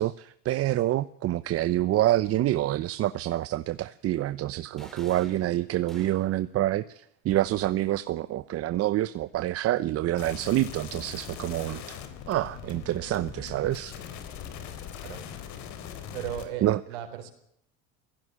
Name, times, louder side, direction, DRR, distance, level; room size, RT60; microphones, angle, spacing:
voice 1, 0.0-12.0 12.3-13.9 16.6-16.8, right 14 dB, 50° right, 15 dB, 0.9 m, -27 dB
sound 1, 4.8-6.5, equal, ahead, 4.3 m, -50 dB
sound 2, 10.2-16.4, left 9 dB, 70° left, 4.0 m, -41 dB
voice 2, 16.1-17.3, right 10 dB, 90° right, 7 dB, 4.3 m, -36 dB
18.0 x 15.5 x 9.8 m, 0.73 s
supercardioid pair, 95°, 30 cm